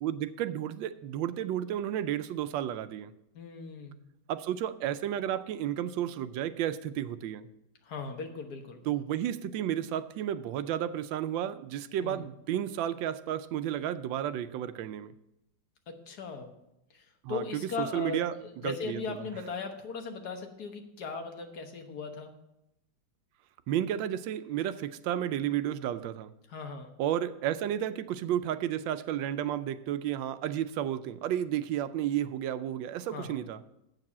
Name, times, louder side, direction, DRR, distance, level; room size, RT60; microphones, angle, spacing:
voice 1, 0.0-3.1 4.3-7.5 8.9-15.1 17.2-18.3 18.6-19.0 23.7-26.3 27.0-33.6, right 11 dB, 90° right, 12 dB, 1.3 m, -32 dB
voice 2, 3.3-4.0 7.8-8.8 12.0-12.3 15.9-16.5 16.9-22.3 26.5-26.9 33.1-33.4, left 4 dB, 60° left, 4 dB, 1.6 m, -38 dB
8.0 x 6.6 x 7.3 m, 0.86 s
omnidirectional pair, 2.0 m